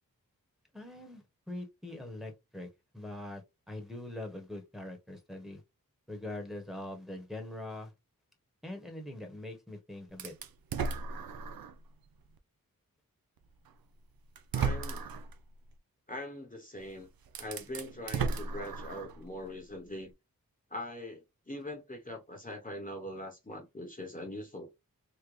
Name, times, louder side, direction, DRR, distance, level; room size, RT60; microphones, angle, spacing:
voice 1, 0.7-2.7 2.9-5.6 6.1-7.9 8.6-10.3, left 1 dB, ahead, 1.0 m, -43 dB
sound 1, 10.2-11.8 12.4-12.5 13.7-13.8 14.4-15.3 16.8-16.9 17.3-19.2, right 5 dB, 85° right, 0.5 m, -35 dB
voice 2, 14.5-15.1 16.1-17.1 17.4-20.1 20.7-24.7, left 1 dB, 25° left, 0.9 m, -42 dB
3.8 x 2.1 x 3.1 m
wide cardioid pair, 60°, 34 cm